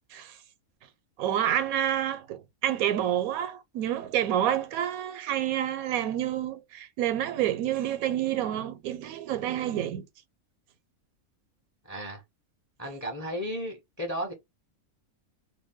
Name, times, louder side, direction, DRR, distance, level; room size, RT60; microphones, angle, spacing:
voice 1, 1.2-10.0, right 11 dB, 90° right, 1.0 m, -28 dB
voice 2, 11.9-12.2 12.8-14.3, equal, 20° left, 0.4 m, -34 dB
2.5 x 2.2 x 3.4 m
omnidirectional pair, 1.5 m